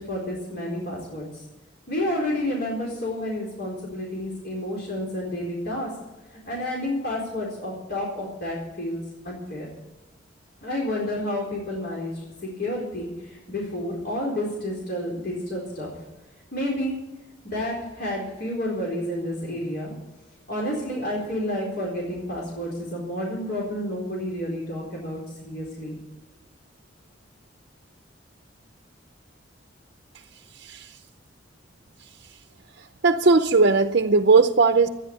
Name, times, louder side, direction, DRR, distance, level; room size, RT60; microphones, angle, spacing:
voice 1, 0.0-1.4 1.9-5.9 6.3-9.7 10.6-15.9 16.5-17.0 17.4-19.9 20.5-25.9, left 1 dB, 55° left, -3 dB, 4.2 m, -30 dB
voice 2, 30.1-31.0 32.0-32.4 32.7-34.9, right 4 dB, 60° right, 7 dB, 0.6 m, -20 dB
13.5 x 9.8 x 8.6 m, 1.1 s
head